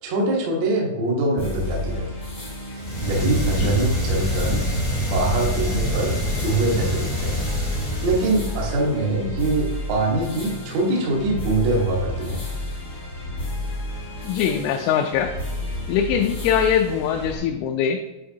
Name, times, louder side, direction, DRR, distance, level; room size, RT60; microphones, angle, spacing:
voice 1, 0.0-2.1 2.7-4.7 5.0-6.2 6.4-7.4 8.0-12.4, right 2 dB, 80° right, -3 dB, 1.5 m, -23 dB
sound 1, 1.4-17.4, left 1 dB, 60° left, 1.0 m, -31 dB
sound 2, 2.7-8.7, equal, 45° left, 0.6 m, -26 dB
voice 2, 14.2-15.3 15.9-18.0, left 8 dB, 85° left, 4 dB, 2.8 m, -22 dB
10.5 x 4.4 x 2.8 m, 1.1 s
omnidirectional pair, 5.6 m